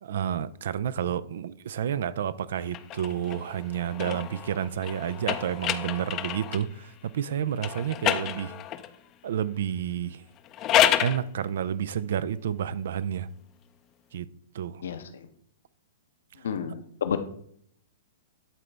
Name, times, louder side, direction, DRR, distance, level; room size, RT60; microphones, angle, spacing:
voice 1, 0.0-8.6 9.2-10.2 11.0-13.3 14.1-14.3 14.5-14.8 16.4-16.5, right 9 dB, 65° right, 0.4 m, -30 dB
sound 1, 2.7-6.7 7.6-9.0 10.4-11.2, left 11 dB, 35° left, 0.5 m, -28 dB
voice 2, 16.4-17.2, left 7 dB, 70° left, 0.8 m, -30 dB
11.5 x 3.9 x 3.3 m
hypercardioid pair, 115°, 0 cm